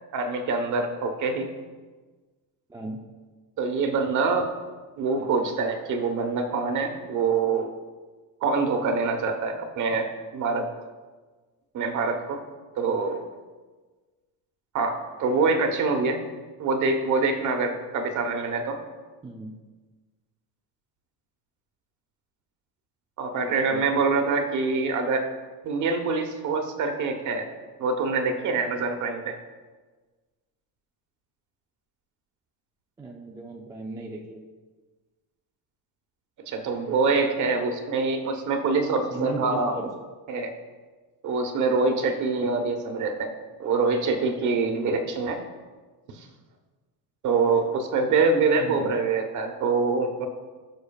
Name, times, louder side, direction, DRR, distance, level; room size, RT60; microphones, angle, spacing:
voice 1, 0.1-1.5 3.6-4.5 5.0-7.7 8.4-10.7 11.7-12.4 12.8-13.2 14.7-16.2 16.6-18.8 23.2-25.3 25.6-27.4 27.8-29.3 36.5-39.8 40.3-40.5 41.2-43.3 43.6-45.4 46.2-46.3 47.2-50.3, right 4 dB, 40° right, 5 dB, 1.2 m, -25 dB
voice 2, 2.7-3.0 5.2-5.5 9.9-10.0 19.2-19.5 23.7-23.9 33.0-34.5 39.1-39.9 48.6-48.9, right 2 dB, 10° right, -1 dB, 0.4 m, -36 dB
17.5 x 6.4 x 2.4 m, 1.3 s
cardioid pair, 165°, 43 cm